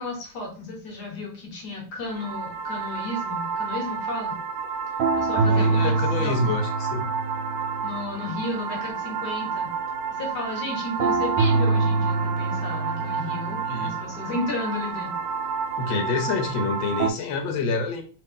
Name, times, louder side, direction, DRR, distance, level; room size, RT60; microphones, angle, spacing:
voice 1, 0.0-4.4 5.1-6.5 7.8-9.7 10.1-15.2, left 2 dB, 60° left, 0 dB, 1.6 m, -33 dB
sound 1, 2.1-17.1, right 4 dB, 80° right, 1.3 m, -27 dB
voice 2, 5.3-7.1 13.7-13.9 15.8-18.0, left 3 dB, 80° left, 6 dB, 1.5 m, -27 dB
3.3 x 2.8 x 3.6 m, 0.37 s
omnidirectional pair, 2.1 m